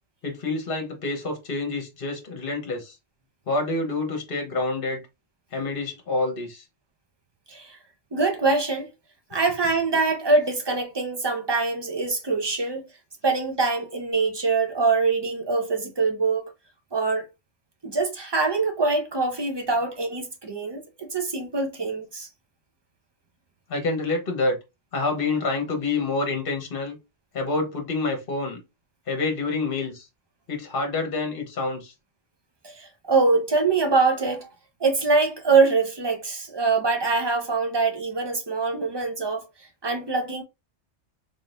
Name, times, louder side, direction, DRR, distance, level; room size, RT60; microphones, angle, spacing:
voice 1, 0.2-2.9 3.5-5.0 5.5-6.6 23.7-24.6 24.9-27.0 27.3-28.6 29.1-30.1 30.5-31.9, left 3 dB, 50° left, 1.3 m, -27 dB
voice 2, 8.1-8.9 9.3-12.9 13.2-16.5 16.9-17.2 17.8-22.3 32.6-34.5 34.8-39.4 39.8-40.4, right 4 dB, 25° right, 0.8 m, -24 dB
3.8 x 3.7 x 2.5 m
omnidirectional pair, 1.2 m